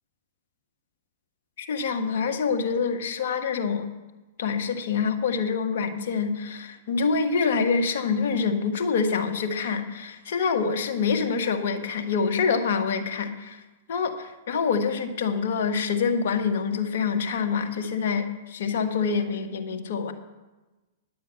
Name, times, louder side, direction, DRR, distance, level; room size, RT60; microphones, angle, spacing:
voice 1, 1.6-3.9 4.4-13.6 13.9-20.1, left 5 dB, 65° left, 5 dB, 1.3 m, -26 dB
10.5 x 7.5 x 6.9 m, 1.1 s
hypercardioid pair, 110°, 0 cm